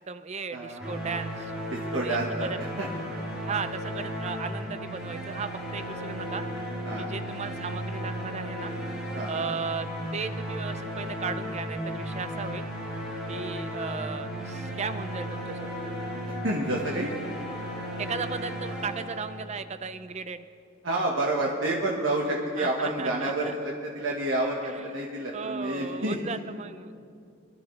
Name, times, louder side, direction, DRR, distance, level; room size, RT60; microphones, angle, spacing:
voice 1, 0.0-1.5 1.9-2.6 3.5-6.4 7.0-8.7 9.3-12.7 13.3-15.8 18.0-20.4 22.6-23.5 24.6-24.7 25.3-27.0, right 5 dB, 35° right, 11 dB, 0.5 m, -36 dB
voice 2, 0.5-0.9 1.7-2.9 6.8-7.1 9.1-9.5 13.3-13.5 16.3-17.2 20.8-26.2, right 2 dB, 75° right, -2 dB, 1.4 m, -29 dB
sound 1, 0.8-19.7, equal, 5° right, 2.7 m, -35 dB
22.5 x 12.5 x 3.2 m, 2.4 s
head